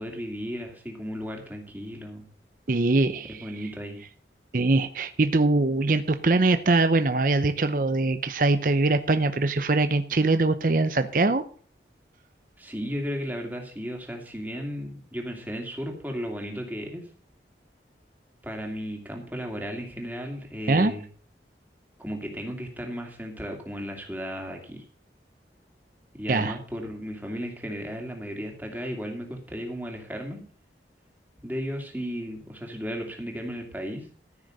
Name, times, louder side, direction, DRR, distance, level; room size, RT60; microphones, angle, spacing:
voice 1, 0.0-2.2 3.3-4.0 12.6-17.1 18.4-21.1 22.0-24.8 26.1-30.4 31.4-34.1, equal, 10° right, 1 dB, 2.6 m, -35 dB
voice 2, 2.7-3.5 4.5-11.4 20.7-20.9 26.3-26.6, right 2 dB, 50° right, 10 dB, 0.7 m, -22 dB
14.5 x 6.4 x 6.6 m, 0.44 s
head